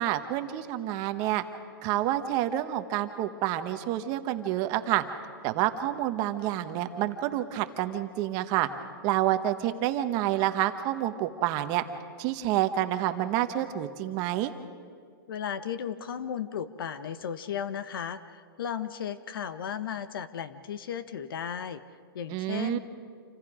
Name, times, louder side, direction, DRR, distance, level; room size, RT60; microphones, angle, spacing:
voice 1, 0.0-1.4 1.8-5.0 5.4-8.7 9.0-11.8 12.2-14.5 22.3-22.8, right 13 dB, 30° right, 8 dB, 1.2 m, -28 dB
voice 2, 15.3-21.8 22.1-22.8, left 8 dB, 70° left, 12 dB, 1.2 m, -35 dB
28.0 x 26.0 x 5.0 m, 2.1 s
hypercardioid pair, 150°, 12 cm